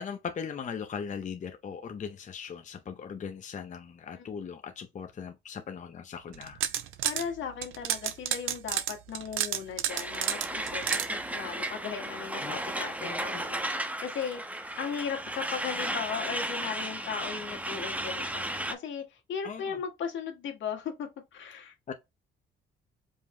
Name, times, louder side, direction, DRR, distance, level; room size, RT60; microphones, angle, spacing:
voice 1, 0.0-6.6 12.4-12.6 13.0-13.4 19.4-19.8 21.9-22.0, left 6 dB, 40° left, 0.6 m, -39 dB
sound 1, 6.3-7.2 7.6-11.1, right 11 dB, 85° right, 0.7 m, -30 dB
voice 2, 7.0-21.7, left 7 dB, 75° left, 1.6 m, -37 dB
Truck, 9.9-18.7, right 1 dB, 5° right, 0.7 m, -34 dB
5.3 x 2.1 x 3.6 m
cardioid pair, 90°, 20 cm